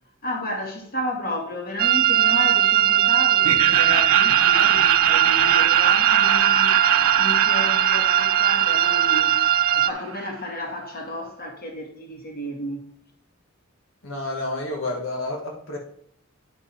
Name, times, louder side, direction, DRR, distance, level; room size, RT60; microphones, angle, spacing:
voice 1, 0.2-6.8 7.2-12.9, left 1 dB, 45° left, 2.2 m, -32 dB
sound 1, 1.8-9.9, right 11 dB, 45° right, 0.4 m, -19 dB
Laughter, 3.4-10.4, right 8 dB, 80° right, 0.6 m, -24 dB
voice 2, 14.0-15.8, left 2 dB, 75° left, 1.5 m, -30 dB
11.0 x 5.3 x 4.4 m
head